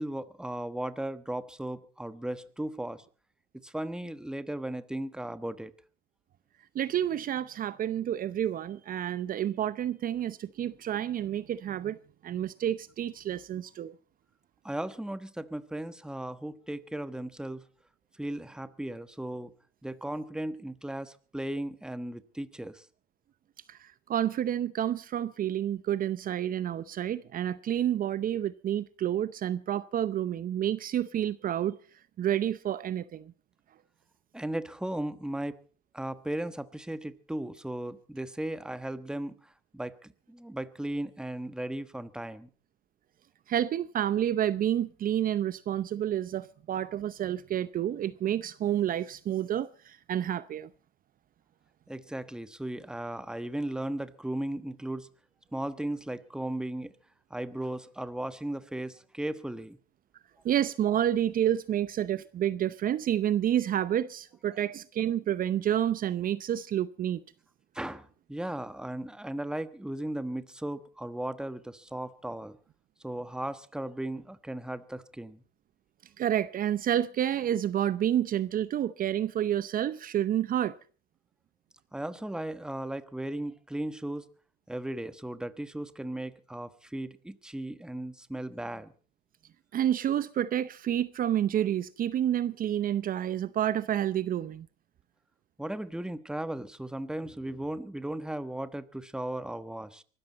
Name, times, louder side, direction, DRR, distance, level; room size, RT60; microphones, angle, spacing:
voice 1, 0.0-3.0 3.6-5.7 14.6-17.6 18.2-19.5 19.8-22.8 34.3-35.6 35.9-42.5 51.9-55.1 55.5-56.9 57.3-59.8 67.7-72.6 73.0-75.4 81.9-84.3 84.7-88.9 95.6-100.0, right 1 dB, 5° right, 1.2 m, -36 dB
voice 2, 6.7-12.0 12.2-13.9 23.7-31.8 32.2-33.3 43.5-50.7 60.4-67.2 76.2-80.7 89.7-94.7, right 11 dB, 45° right, 0.7 m, -29 dB
24.0 x 13.5 x 4.2 m
supercardioid pair, 90°, 20 cm